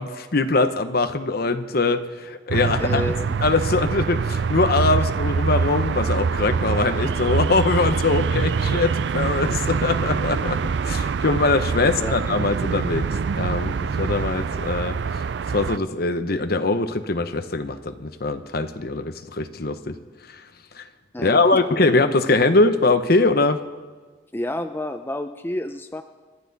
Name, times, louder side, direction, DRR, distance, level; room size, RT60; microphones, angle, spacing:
voice 1, 0.0-3.0 3.4-10.6 10.8-13.1 13.4-14.9 15.5-19.9 20.8-20.9 21.2-23.6, left 3 dB, 55° left, 9 dB, 1.0 m, -22 dB
sound 1, 2.5-15.8, right 5 dB, 65° right, 0.4 m, -24 dB
voice 2, 2.8-3.4 11.8-12.1 21.1-21.8 24.3-26.0, left 1 dB, 10° left, 7 dB, 0.6 m, -29 dB
26.5 x 12.5 x 4.1 m, 1.3 s
head